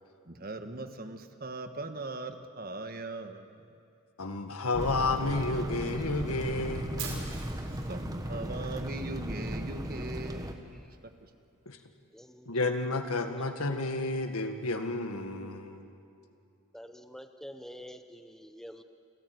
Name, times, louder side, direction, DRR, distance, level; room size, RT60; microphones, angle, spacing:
voice 1, 0.3-3.5 7.9-10.8, right 2 dB, 40° right, 7 dB, 1.4 m, -40 dB
voice 2, 4.2-7.3 11.7-11.8 12.5-15.9, left 2 dB, 80° left, 6 dB, 1.8 m, -31 dB
sound 1, 4.7-10.5, right 1 dB, 15° right, 1.3 m, -36 dB
Fire, 7.0-9.0, right 6 dB, 65° right, 5.3 m, -43 dB
voice 3, 12.1-12.5 16.7-18.8, equal, ahead, 7 dB, 0.8 m, -47 dB
29.0 x 14.0 x 9.4 m, 2.6 s
head